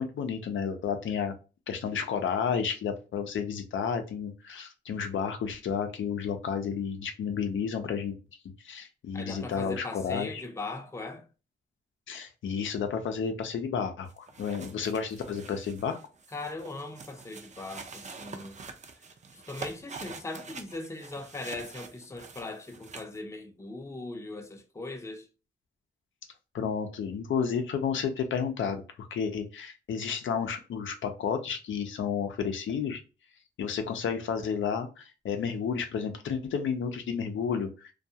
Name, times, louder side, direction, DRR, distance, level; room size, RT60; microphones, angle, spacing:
voice 1, 0.0-1.3 1.7-8.2 8.6-10.4 12.1-16.0 26.5-33.0 33.6-37.9, left 6 dB, 85° left, 0.5 m, -31 dB
voice 2, 9.1-11.3 16.3-18.6 19.3-25.3, left 2 dB, 15° left, 0.5 m, -39 dB
sound 1, 14.1-23.2, right 4 dB, 40° right, 0.5 m, -46 dB
2.3 x 2.3 x 2.7 m
cardioid pair, 80°, 19 cm